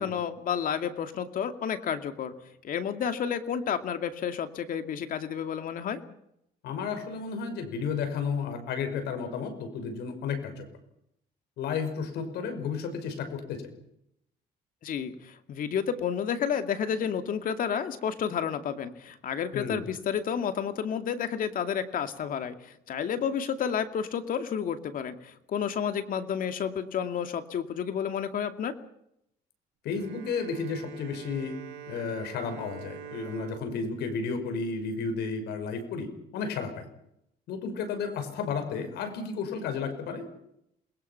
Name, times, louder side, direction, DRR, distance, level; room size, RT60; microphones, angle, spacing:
voice 1, 0.0-2.3 2.6-6.0 14.8-28.7, left 8 dB, 55° left, 8 dB, 2.5 m, -31 dB
voice 2, 6.6-10.7 11.6-13.7 19.5-19.8 29.8-31.5 31.9-36.1 36.3-36.9 37.5-40.2, left 5 dB, 80° left, 8 dB, 5.7 m, -32 dB
Bowed string instrument, 29.9-35.4, right 9 dB, 85° right, 1.7 m, -46 dB
28.0 x 21.0 x 5.9 m, 0.77 s
cardioid pair, 110°, 17 cm